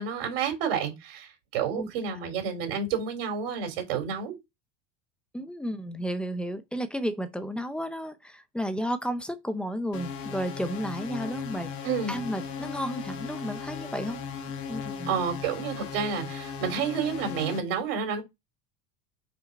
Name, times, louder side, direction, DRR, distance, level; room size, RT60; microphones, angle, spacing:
voice 1, 0.0-4.4 11.8-12.2 15.1-18.2, right 6 dB, 75° right, 3.4 m, -30 dB
voice 2, 5.3-11.7 12.1-14.2 14.7-15.1, equal, 5° left, 0.5 m, -32 dB
sound 1, 9.9-17.6, left 6 dB, 50° left, 1.9 m, -37 dB
5.4 x 4.9 x 4.1 m
supercardioid pair, 150°, 29 cm